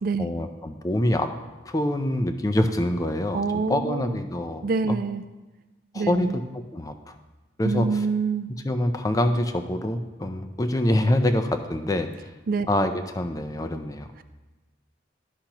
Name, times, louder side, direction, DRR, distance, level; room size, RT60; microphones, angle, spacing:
voice 1, 0.2-1.3 1.7-3.4 3.7-4.6 5.9-7.1 7.6-7.9 8.6-12.1 12.7-14.1, left 1 dB, 20° left, 8 dB, 0.4 m, -25 dB
voice 2, 3.3-4.2 4.6-5.2 5.9-6.4 7.6-8.5 12.5-12.7, right 4 dB, 50° right, 12 dB, 0.3 m, -26 dB
11.5 x 5.8 x 2.9 m, 1.2 s
head